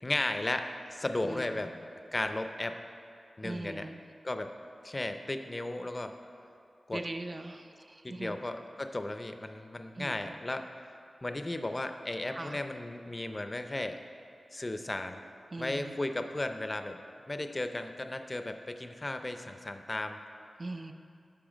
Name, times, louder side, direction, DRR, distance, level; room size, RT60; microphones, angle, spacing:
voice 1, 0.0-1.7 2.1-2.8 3.4-3.9 4.2-4.5 4.8-6.1 6.9-7.0 8.0-10.7 11.2-14.0 14.5-15.2 15.6-17.0 17.3-20.2, left 2 dB, 30° left, 7 dB, 0.5 m, -35 dB
voice 2, 1.2-1.8 3.4-4.0 6.9-8.4 10.0-10.4 12.3-12.6 15.5-16.0 20.6-20.9, right 2 dB, 40° right, 6 dB, 0.4 m, -41 dB
8.9 x 5.7 x 5.0 m, 2.5 s
wide cardioid pair, 65°, 0 cm